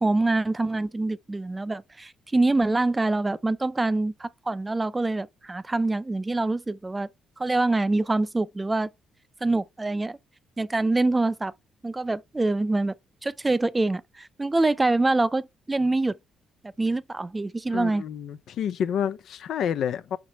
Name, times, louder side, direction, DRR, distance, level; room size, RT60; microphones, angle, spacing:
voice 1, 0.0-7.1 7.4-8.9 9.4-10.2 10.6-11.5 11.8-12.9 13.2-16.2 16.8-18.0, right 2 dB, 20° right, 0.5 m, -25 dB
voice 2, 17.7-20.2, left 8 dB, 70° left, 0.6 m, -29 dB
5.2 x 4.8 x 4.2 m
cardioid pair, 90°, 0 cm